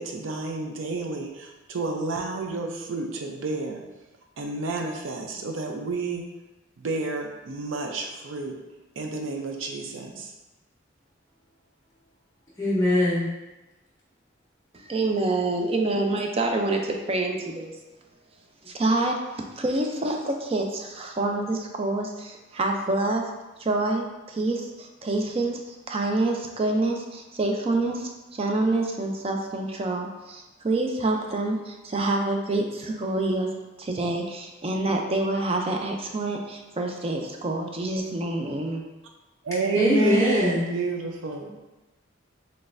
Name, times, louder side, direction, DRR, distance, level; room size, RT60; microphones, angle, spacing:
voice 1, 0.0-3.8 4.4-6.2 6.8-8.5 9.0-10.3 39.4-41.5, right 3 dB, 90° right, 2 dB, 0.5 m, -29 dB
voice 2, 12.6-13.3 39.7-40.7 41.4-41.5, left 1 dB, 15° left, -8 dB, 0.5 m, -22 dB
voice 3, 14.7-17.8 18.7-19.2 19.6-23.3 23.6-33.5 33.8-38.8, right 2 dB, 30° right, 2 dB, 0.4 m, -27 dB
4.0 x 3.3 x 2.5 m, 1.1 s
head